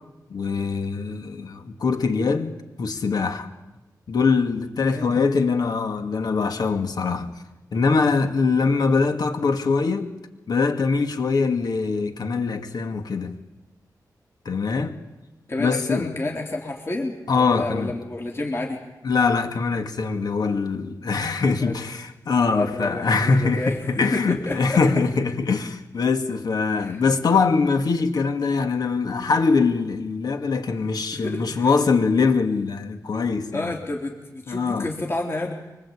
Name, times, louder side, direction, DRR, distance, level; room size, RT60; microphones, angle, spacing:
voice 1, 0.3-3.5 4.1-7.4 7.7-10.1 10.5-13.4 14.5-15.0 15.6-16.1 17.3-17.9 19.0-33.8 34.5-34.9, left 4 dB, 75° left, 2.3 m, -23 dB
voice 2, 4.8-5.2 15.5-18.8 21.7-21.8 22.5-24.8 26.8-27.0 30.8-31.8 33.5-35.5, left 2 dB, 35° left, 3.5 m, -30 dB
25.0 x 24.0 x 8.7 m
wide cardioid pair, 120°, 7 cm